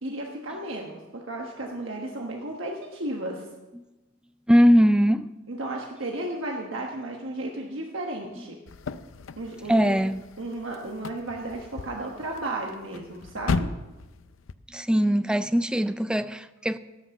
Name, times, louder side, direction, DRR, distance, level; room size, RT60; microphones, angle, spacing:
voice 1, 0.0-3.5 5.5-8.6 9.4-10.0 10.4-13.7, right 1 dB, 75° right, 1.3 m, -34 dB
voice 2, 4.5-5.3 9.7-10.2 14.7-16.8, equal, 5° right, 0.4 m, -21 dB
sound 1, 8.7-14.5, left 4 dB, 85° left, 0.5 m, -35 dB
17.0 x 6.1 x 7.0 m
head